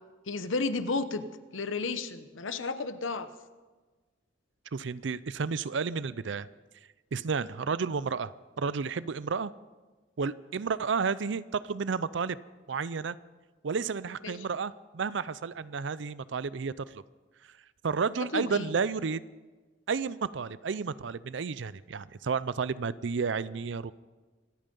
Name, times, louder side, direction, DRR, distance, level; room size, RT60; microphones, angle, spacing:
voice 1, 0.3-1.2 1.5-3.3 14.2-14.3 18.3-18.7, left 3 dB, 85° left, 11 dB, 1.0 m, -32 dB
voice 2, 4.7-6.5 7.1-9.5 10.2-12.4 12.7-13.2 13.6-17.0 17.8-19.2 19.9-23.9, right 5 dB, 65° right, 18 dB, 0.5 m, -31 dB
25.5 x 9.1 x 5.3 m, 1.3 s
head